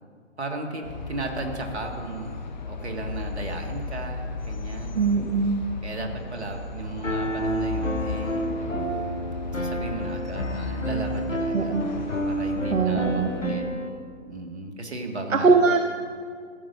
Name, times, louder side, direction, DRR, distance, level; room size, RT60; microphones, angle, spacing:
voice 1, 0.4-2.3 2.7-5.1 5.8-8.7 9.5-11.8 12.3-13.6 14.2-15.6, right 2 dB, 60° right, 3 dB, 1.9 m, -35 dB
sound 1, 0.8-13.5, left 3 dB, 35° left, 0.8 m, -36 dB
voice 2, 4.9-5.6 11.5-11.9 12.7-13.6 15.3-15.8, right 4 dB, 80° right, 6 dB, 0.8 m, -21 dB
Piano, 7.0-13.9, right 1 dB, 85° left, 1.4 m, -29 dB
14.0 x 7.8 x 5.6 m, 2.1 s
figure-of-eight pair, 140°, 38 cm